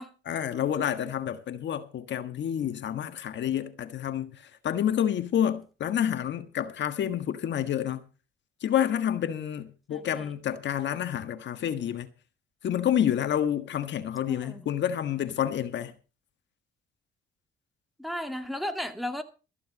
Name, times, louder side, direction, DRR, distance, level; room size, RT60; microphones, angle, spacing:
voice 1, 0.2-8.1 8.6-12.1 12.6-15.9, left 10 dB, 65° left, 1.5 m, -29 dB
voice 2, 9.9-10.3 14.3-14.7 18.0-19.2, left 1 dB, ahead, 2.3 m, -35 dB
14.5 x 10.5 x 5.2 m
cardioid pair, 90°, 20 cm